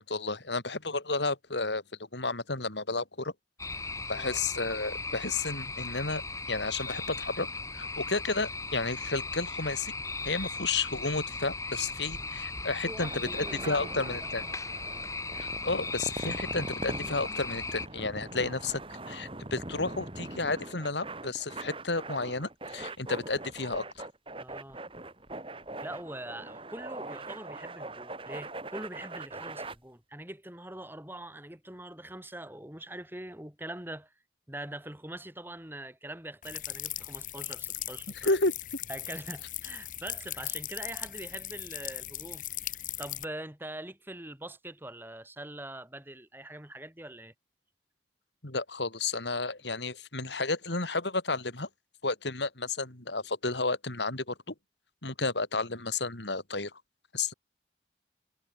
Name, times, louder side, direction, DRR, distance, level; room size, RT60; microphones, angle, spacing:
voice 1, 0.0-1.8 2.1-3.3 4.1-6.2 6.5-7.5 7.7-9.9 10.2-14.4 15.4-18.8 19.1-24.1 38.2-38.5 48.4-51.7 52.0-54.5 55.0-56.7 57.1-57.3, left 3 dB, 80° left, 3.6 m, -32 dB
sound 1, 3.6-17.9, left 3 dB, 15° left, 4.0 m, -37 dB
sound 2, 12.7-29.8, right 2 dB, 30° right, 3.4 m, -41 dB
voice 2, 12.8-14.3 24.4-24.8 25.8-34.1 34.5-38.3 38.9-47.3, right 1 dB, 10° right, 3.1 m, -43 dB
sound 3, 36.4-43.2, left 13 dB, 45° left, 1.7 m, -38 dB
head